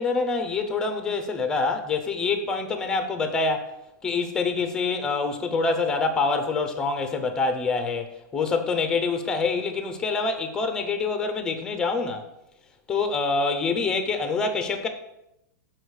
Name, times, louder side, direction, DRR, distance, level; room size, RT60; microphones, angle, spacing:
voice 1, 0.0-3.7 4.0-12.3 12.9-14.9, left 4 dB, 5° left, 0.5 m, -26 dB
6.1 x 4.9 x 6.3 m
supercardioid pair, 180°, 10 cm